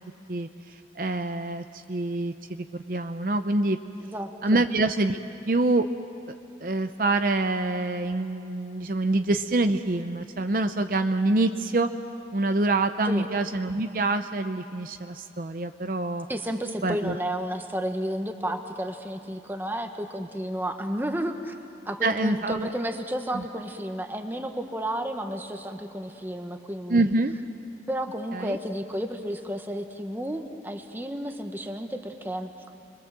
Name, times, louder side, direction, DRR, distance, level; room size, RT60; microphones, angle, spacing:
voice 1, 1.0-3.8 4.4-5.2 5.5-5.9 6.6-11.9 12.3-16.3 16.8-17.2 22.0-22.7 23.3-23.4 26.9-27.4 28.3-28.6, right 2 dB, 50° right, 7 dB, 0.7 m, -26 dB
voice 2, 4.0-4.6 13.0-13.3 16.3-21.6 21.8-27.0 27.9-32.5, equal, 10° right, 5 dB, 1.3 m, -32 dB
29.5 x 22.5 x 7.5 m, 2.8 s
head